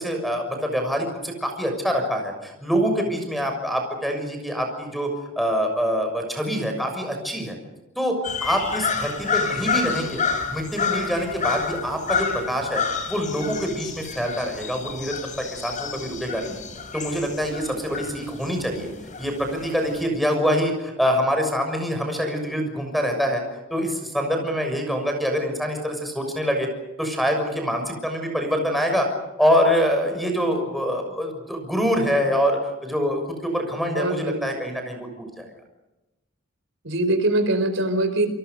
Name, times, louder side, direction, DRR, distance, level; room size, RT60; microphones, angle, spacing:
voice 1, 0.0-7.6 7.9-8.1 8.4-10.2 10.5-16.6 16.9-18.9 19.2-23.4 23.7-26.7 27.0-29.1 29.4-35.5, equal, ahead, 5 dB, 6.6 m, -25 dB
sound 1, 8.2-20.1, left 6 dB, 40° left, 5.4 m, -29 dB
voice 2, 33.9-34.5 36.8-38.3, right 1 dB, 65° right, 9 dB, 4.7 m, -23 dB
28.5 x 24.5 x 6.8 m, 0.97 s
head